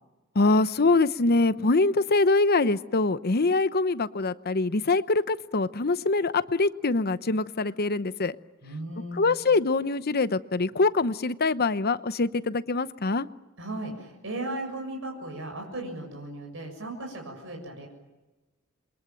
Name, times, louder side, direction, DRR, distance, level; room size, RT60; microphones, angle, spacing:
voice 1, 0.3-8.4 9.2-13.3, left 3 dB, 50° left, 14 dB, 0.8 m, -24 dB
voice 2, 8.6-9.5 13.6-17.9, right 1 dB, 65° right, 1 dB, 7.0 m, -36 dB
28.0 x 23.0 x 9.1 m, 1.1 s
head